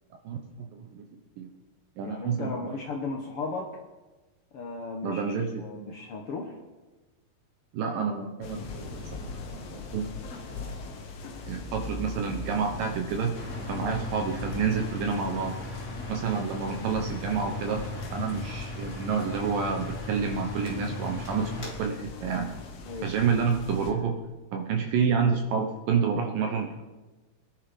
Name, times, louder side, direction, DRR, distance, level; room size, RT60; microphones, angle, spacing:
voice 1, 0.2-1.1 1.4-1.5 2.0-2.8 5.0-5.9 7.7-9.4 9.9-10.1 11.5-15.6 16.1-17.9 18.1-22.5 23.0-24.2 24.5-26.8, right 6 dB, 70° right, 3 dB, 2.5 m, -29 dB
voice 2, 2.0-3.7 4.5-6.6 13.8-14.0 22.8-23.1, left 3 dB, 85° left, 1 dB, 1.2 m, -36 dB
sound 1, 8.4-23.9, left 3 dB, 55° left, 1.9 m, -40 dB
sound 2, 13.3-21.7, left 2 dB, 20° left, 2.6 m, -39 dB
21.5 x 11.0 x 5.2 m, 1.2 s
omnidirectional pair, 4.5 m